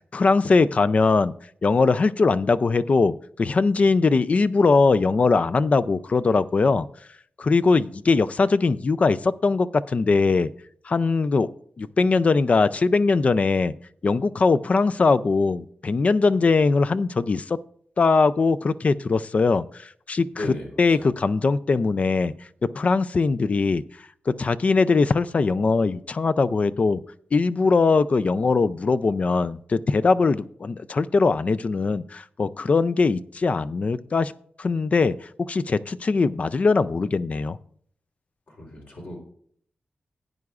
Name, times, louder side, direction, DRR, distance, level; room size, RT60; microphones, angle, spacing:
voice 1, 0.1-1.3 1.6-6.9 7.4-10.5 10.9-11.5 11.8-13.7 14.0-17.6 18.0-20.5 20.8-22.3 22.6-23.8 24.3-27.0 27.3-34.3 34.6-37.6, left 4 dB, 40° left, 14 dB, 0.4 m, -21 dB
voice 2, 20.3-21.1 38.5-39.2, left 1 dB, 60° left, -2 dB, 3.4 m, -36 dB
15.5 x 9.4 x 2.4 m, 0.62 s
wide cardioid pair, 125°, 3 cm